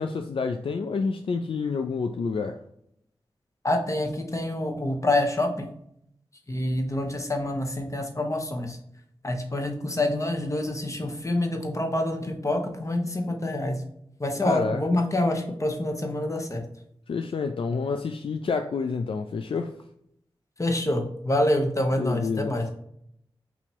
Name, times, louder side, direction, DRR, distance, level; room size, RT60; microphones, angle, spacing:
voice 1, 0.0-2.6 14.4-14.8 17.1-19.7 22.0-22.7, left 4 dB, 65° left, 0.4 m, -28 dB
voice 2, 3.6-5.7 6.5-8.8 9.2-13.8 14.2-16.6 20.6-22.6, left 1 dB, 30° left, 1.1 m, -26 dB
4.1 x 2.9 x 4.4 m
cardioid pair, 45°, 10 cm